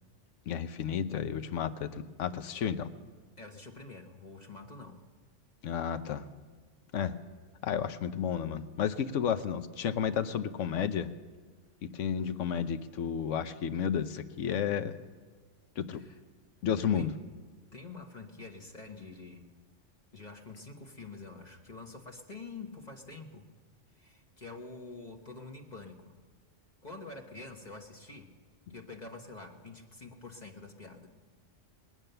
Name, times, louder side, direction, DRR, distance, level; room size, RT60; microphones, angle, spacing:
voice 1, 0.5-2.9 5.6-6.2 6.9-7.1 7.6-11.1 11.8-15.0 15.8-16.0 16.6-17.1, left 8 dB, 80° left, 11 dB, 1.1 m, -32 dB
voice 2, 3.4-5.0 15.9-16.2 16.9-17.1 17.7-19.5 20.1-23.5 23.9-26.1 26.8-28.3 28.7-31.1, left 3 dB, 35° left, 2 dB, 1.2 m, -47 dB
21.0 x 9.1 x 6.7 m, 1.4 s
omnidirectional pair, 1.3 m